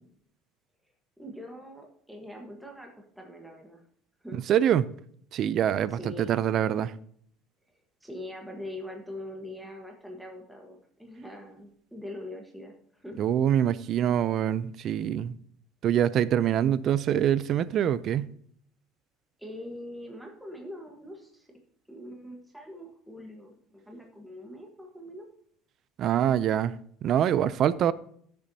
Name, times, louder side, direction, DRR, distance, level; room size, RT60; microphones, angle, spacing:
voice 1, 1.2-3.8 4.2-4.4 5.9-6.4 8.0-13.2 19.4-21.5 21.9-25.3, left 1 dB, 5° right, 1.4 m, -43 dB
voice 2, 4.5-4.9 5.3-6.9 13.2-15.3 15.8-18.3 26.0-26.7 27.0-27.9, right 10 dB, 45° right, 0.5 m, -25 dB
15.0 x 6.9 x 2.8 m
cardioid pair, 145°, 0 cm